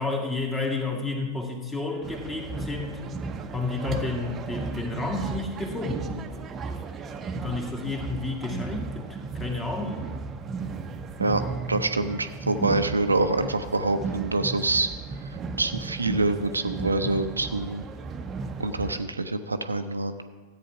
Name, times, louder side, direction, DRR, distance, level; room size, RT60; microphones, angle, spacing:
voice 1, 0.0-3.0 3.5-6.3 7.3-10.1, left 3 dB, 15° left, 2 dB, 1.9 m, -31 dB
sound 1, 2.0-19.0, right 4 dB, 25° right, 0.8 m, -35 dB
voice 2, 11.7-14.9 15.6-17.8 18.6-20.1, right 2 dB, 80° right, 8 dB, 0.6 m, -26 dB
14.0 x 8.6 x 4.6 m, 1.4 s
figure-of-eight pair, 90°, 0 cm